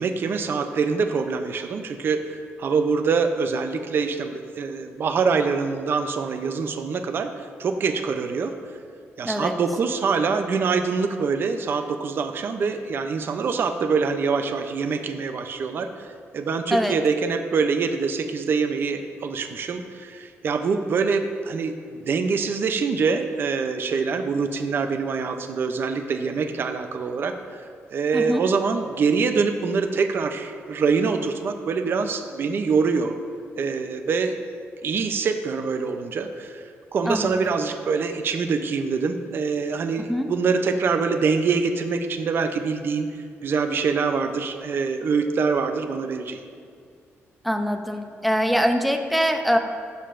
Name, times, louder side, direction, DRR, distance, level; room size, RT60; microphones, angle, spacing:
voice 1, 0.0-7.3 7.6-8.5 9.2-16.1 16.3-27.6 27.9-33.2 33.6-34.4 34.8-36.6 36.9-43.1 43.4-46.4, right 5 dB, 50° right, 7 dB, 0.5 m, -24 dB
voice 2, 37.1-37.5 40.1-40.3 47.4-49.6, equal, ahead, 5 dB, 0.6 m, -23 dB
15.5 x 6.6 x 2.5 m, 2.2 s
cardioid pair, 140°, 5 cm